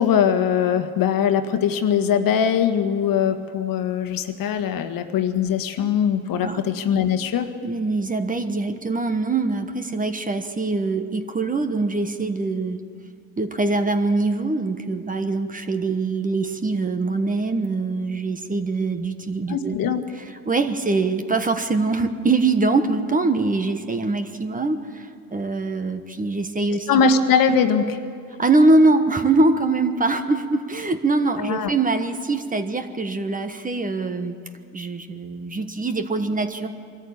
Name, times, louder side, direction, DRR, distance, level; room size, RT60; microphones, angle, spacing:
voice 1, 0.0-7.5 19.5-20.0 26.9-28.0 31.4-31.7, left 7 dB, 50° left, 8 dB, 1.6 m, -21 dB
voice 2, 7.6-12.8 13.4-19.9 20.2-27.0 28.4-34.4 34.7-36.7, right 3 dB, 20° right, 8 dB, 1.3 m, -23 dB
23.5 x 13.5 x 8.7 m, 2.3 s
supercardioid pair, 90°, 44 cm